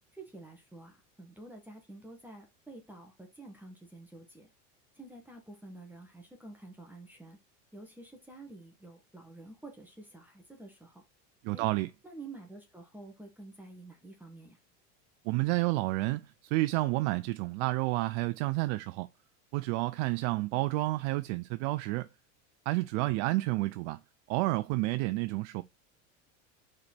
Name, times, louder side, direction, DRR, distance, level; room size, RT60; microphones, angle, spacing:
voice 1, 0.1-4.5 5.0-7.4 7.7-11.0 11.5-11.6 12.0-14.6, right 2 dB, 5° right, 1.5 m, -49 dB
voice 2, 11.4-11.9 15.3-19.1 19.5-22.1 22.7-24.0 24.3-25.6, right 20 dB, 65° right, 0.5 m, -30 dB
4.9 x 4.3 x 5.9 m
supercardioid pair, 115°, 39 cm